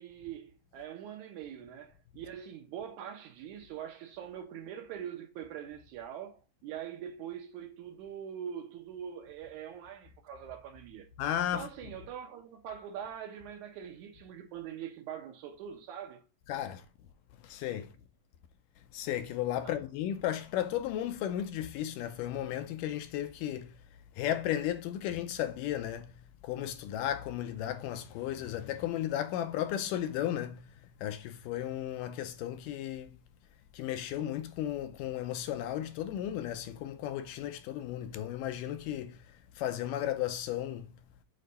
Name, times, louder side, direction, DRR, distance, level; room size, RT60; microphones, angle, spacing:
voice 1, 0.0-11.1 11.4-16.2 19.6-19.8, right 9 dB, 75° right, 1.9 m, -43 dB
voice 2, 11.2-11.7 16.5-16.8 17.4-17.9 18.9-23.7 24.2-30.7 31.0-33.2 33.7-39.2 39.6-40.9, left 11 dB, 80° left, 2.1 m, -34 dB
6.6 x 4.0 x 5.3 m
omnidirectional pair, 4.0 m